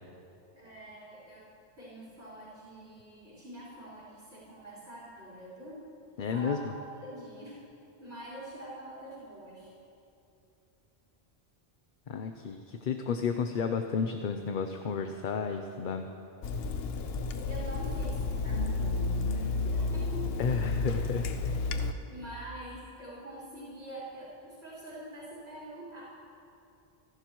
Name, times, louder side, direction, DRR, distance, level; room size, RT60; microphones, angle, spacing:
voice 1, 0.5-1.5 1.8-5.8 6.2-7.6 8.0-9.7 17.4-20.4 22.1-26.0, right 1 dB, 80° right, -9 dB, 4.6 m, -45 dB
voice 2, 6.2-6.6 12.1-16.1 20.4-21.7, left 6 dB, 55° left, 6 dB, 0.8 m, -32 dB
Water tap faucet / Sink (filling or washing), 16.4-21.9, left 3 dB, 75° left, 1.0 m, -31 dB
29.0 x 11.5 x 3.1 m, 2.8 s
omnidirectional pair, 1.1 m